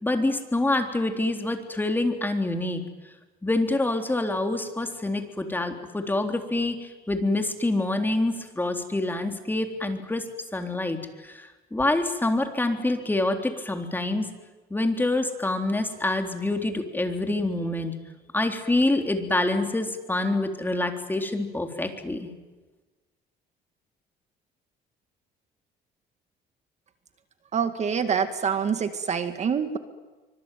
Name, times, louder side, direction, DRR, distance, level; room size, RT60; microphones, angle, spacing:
voice 1, 0.0-2.8 3.4-10.2 10.5-14.3 14.7-17.9 18.3-22.3, left 2 dB, 10° left, 5 dB, 3.6 m, -26 dB
voice 2, 27.5-29.8, right 6 dB, 40° right, 8 dB, 2.1 m, -26 dB
25.5 x 25.0 x 9.3 m, 1.2 s
cardioid pair, 110°, 17 cm